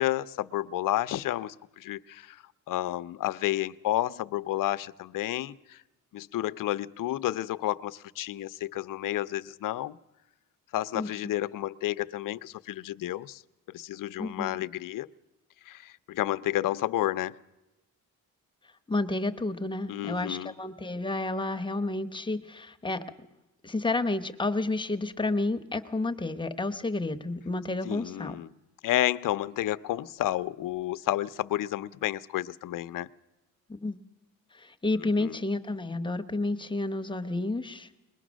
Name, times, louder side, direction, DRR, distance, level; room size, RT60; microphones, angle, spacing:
voice 1, 0.0-5.8 6.1-10.0 10.7-13.4 13.7-15.1 15.6-17.4 19.9-20.5 27.8-28.5 28.8-33.1 35.2-35.4, left 14 dB, 70° left, 0.6 m, -31 dB
voice 2, 14.2-14.6 18.9-23.0 23.6-28.4 33.7-34.0 34.6-38.0, left 2 dB, 15° left, 0.9 m, -30 dB
22.5 x 21.0 x 6.3 m
cardioid pair, 120°, 34 cm